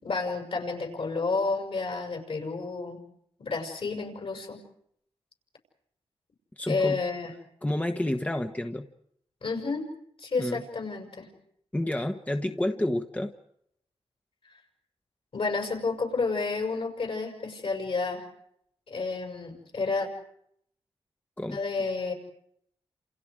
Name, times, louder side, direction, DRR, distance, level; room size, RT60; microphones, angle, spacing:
voice 1, 0.0-3.0 3.4-4.6 6.7-7.3 9.4-9.9 10.2-11.3 15.3-18.3 18.9-20.1 21.5-22.1, left 4 dB, 65° left, 3 dB, 6.3 m, -30 dB
voice 2, 6.6-7.0 7.6-8.9 10.4-10.6 11.7-13.3 21.4-21.6, left 1 dB, 15° left, 5 dB, 1.3 m, -29 dB
28.5 x 28.5 x 4.9 m, 0.72 s
cardioid pair, 55°, 10 cm